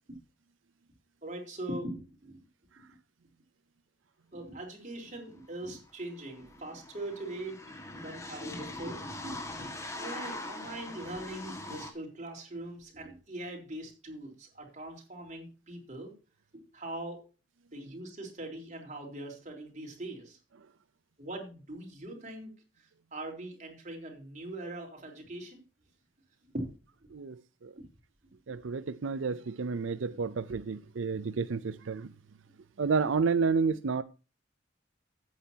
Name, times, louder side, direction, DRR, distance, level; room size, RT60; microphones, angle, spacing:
voice 1, 1.2-2.4 4.3-7.6 7.9-16.1 16.5-17.2 17.7-20.4 21.2-22.5 23.1-25.6 26.5-26.7 27.7-27.8, right 1 dB, 40° right, 4.0 m, -41 dB
sound 1, 5.4-5.5 5.7-11.9, left 2 dB, 15° left, 1.8 m, -42 dB
voice 2, 28.5-32.1 32.8-34.0, right 5 dB, 90° right, 0.5 m, -30 dB
14.5 x 9.0 x 2.8 m
head